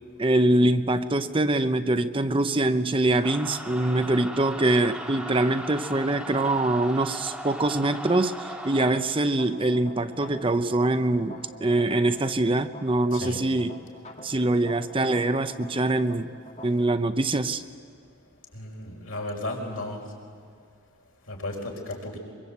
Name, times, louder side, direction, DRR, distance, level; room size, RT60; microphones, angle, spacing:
voice 1, 0.2-13.7 14.2-16.3 16.6-17.6, right 2 dB, 25° right, 0.7 m, -24 dB
sound 1, 3.2-8.9, equal, 5° right, 2.5 m, -37 dB
sound 2, 9.3-16.7, equal, 35° left, 2.1 m, -46 dB
voice 2, 13.1-13.4 18.5-20.0 21.3-22.2, left 1 dB, 85° left, 5.2 m, -34 dB
23.0 x 23.0 x 8.2 m
head